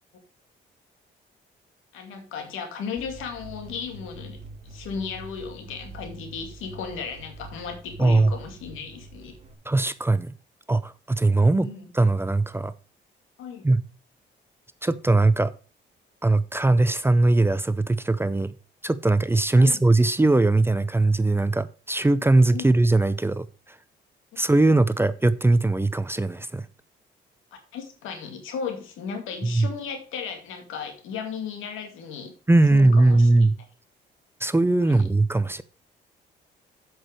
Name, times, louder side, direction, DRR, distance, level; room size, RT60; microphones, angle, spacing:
voice 1, 1.9-4.4 4.7-9.4 11.4-11.9 13.4-13.7 19.5-19.8 22.5-22.7 27.5-32.3 32.7-33.5 34.8-35.1, left 6 dB, 90° left, 2.4 m, -35 dB
sound 1, 3.0-9.5, right 2 dB, 35° right, 2.6 m, -44 dB
voice 2, 8.0-8.3 9.7-10.3 10.7-11.7 11.9-12.7 13.6-13.8 14.8-15.5 16.2-18.5 18.8-23.8 24.4-26.7 29.4-29.7 32.5-33.6 34.4-35.6, right 2 dB, 10° right, 0.6 m, -20 dB
7.8 x 6.3 x 5.2 m
cardioid pair, 90°, 20 cm